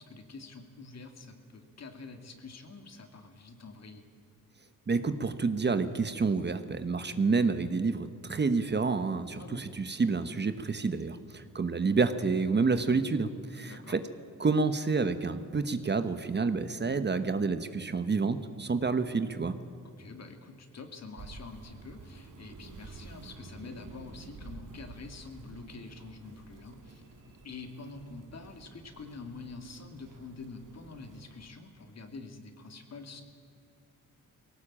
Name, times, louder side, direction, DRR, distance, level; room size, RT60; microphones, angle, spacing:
voice 1, 0.0-4.0 9.4-9.7 13.6-14.0 19.8-33.2, left 3 dB, 55° left, 6 dB, 2.5 m, -46 dB
voice 2, 4.9-14.0 14.4-19.5, right 4 dB, 35° right, 10 dB, 1.2 m, -29 dB
sound 1, 21.2-31.5, right 3 dB, 70° right, 2.7 m, -50 dB
20.0 x 17.5 x 8.8 m, 2.4 s
cardioid pair, 95°, 32 cm